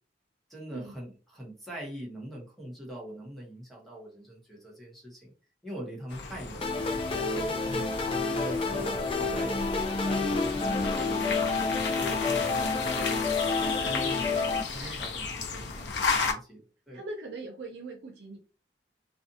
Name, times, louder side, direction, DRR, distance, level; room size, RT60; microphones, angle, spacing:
voice 1, 0.5-5.3 5.6-6.7 7.3-11.3 11.8-13.3 13.8-16.6 16.9-17.0, right 1 dB, ahead, -3 dB, 0.9 m, -42 dB
sound 1, 6.1-16.3, left 4 dB, 85° left, 0.6 m, -34 dB
sound 2, 6.6-14.6, left 3 dB, 30° left, 0.4 m, -29 dB
voice 2, 7.1-7.6 13.6-14.0 14.8-15.0 16.9-18.4, right 2 dB, 75° right, 2 dB, 0.5 m, -42 dB
2.6 x 2.4 x 2.6 m, 0.35 s
head